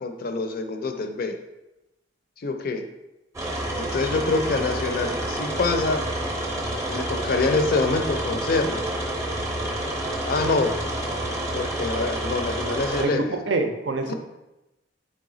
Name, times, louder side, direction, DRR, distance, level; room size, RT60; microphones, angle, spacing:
voice 1, 0.0-1.4 2.4-2.8 3.8-6.1 6.9-8.8 10.2-10.8 11.5-13.4 14.1-14.2, left 3 dB, 50° left, 6 dB, 0.4 m, -25 dB
sound 1, 3.3-13.1, right 1 dB, 15° right, 0.6 m, -28 dB
voice 2, 12.9-14.1, right 3 dB, 75° right, 6 dB, 0.5 m, -26 dB
3.9 x 3.3 x 3.8 m, 0.96 s
head